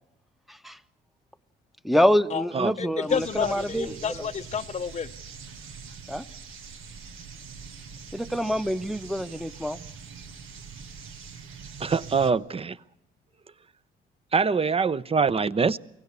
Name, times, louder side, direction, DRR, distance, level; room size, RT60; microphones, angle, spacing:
voice 1, 1.8-3.9 6.1-6.2 8.1-9.8, equal, ahead, 0.9 m, -25 dB
voice 2, 2.8-5.1, left 7 dB, 35° left, 0.7 m, -30 dB
sound 1, 3.1-12.3, right 5 dB, 85° right, 1.9 m, -43 dB
voice 3, 11.8-12.8 14.3-15.8, right 5 dB, 30° right, 0.8 m, -24 dB
24.0 x 16.5 x 8.4 m
cardioid pair, 90°, 20 cm